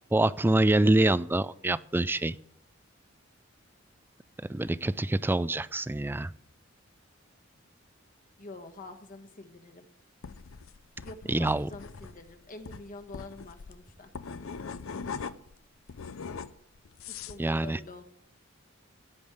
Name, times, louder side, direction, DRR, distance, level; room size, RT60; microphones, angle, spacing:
voice 1, 0.1-2.4 4.5-6.3 11.3-11.7 17.4-17.8, right 2 dB, 10° right, 17 dB, 0.3 m, -25 dB
voice 2, 8.4-9.9 11.0-14.1 17.3-18.0, left 2 dB, 40° left, 6 dB, 1.4 m, -46 dB
sound 1, 10.2-15.6 15.9-17.4, left 5 dB, 80° left, 0.6 m, -41 dB
15.5 x 5.3 x 8.0 m, 0.73 s
head